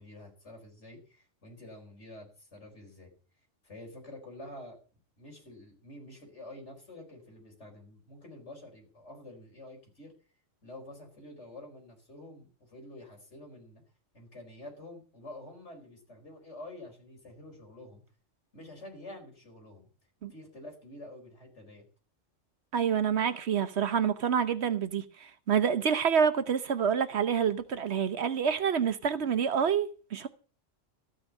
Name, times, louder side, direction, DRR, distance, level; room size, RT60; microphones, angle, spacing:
voice 1, 0.0-3.1 3.6-4.8 5.2-10.1 10.6-13.8 14.1-18.0 18.5-19.9 20.3-21.9, left 1 dB, 65° left, 5.0 m, -48 dB
voice 2, 22.7-30.3, right 7 dB, 60° right, 1.1 m, -27 dB
14.0 x 6.2 x 8.2 m
omnidirectional pair, 1.3 m